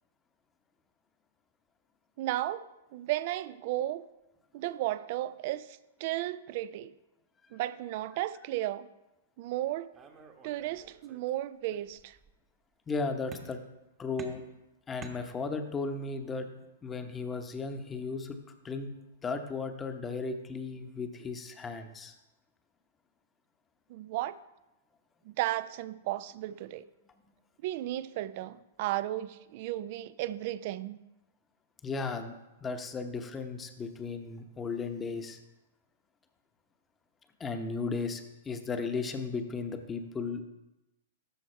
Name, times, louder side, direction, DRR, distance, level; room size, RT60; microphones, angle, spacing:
voice 1, 2.2-4.0 4.5-6.9 7.5-8.9 9.4-9.9 10.4-12.2 23.9-24.4 25.3-26.8 27.6-31.0, right 14 dB, 50° right, 0.4 m, -34 dB
sound 1, 9.9-11.3 11.6-12.4 13.3-13.8 14.2-15.8, right 5 dB, 25° right, 1.0 m, -51 dB
voice 2, 12.9-13.6 14.0-14.4 14.9-16.5 16.8-18.4 18.6-18.9 19.2-22.1 31.8-32.4 32.6-35.4 37.4-40.4, left 4 dB, 20° left, 0.9 m, -35 dB
12.5 x 4.5 x 4.4 m
hypercardioid pair, 110°, 0 cm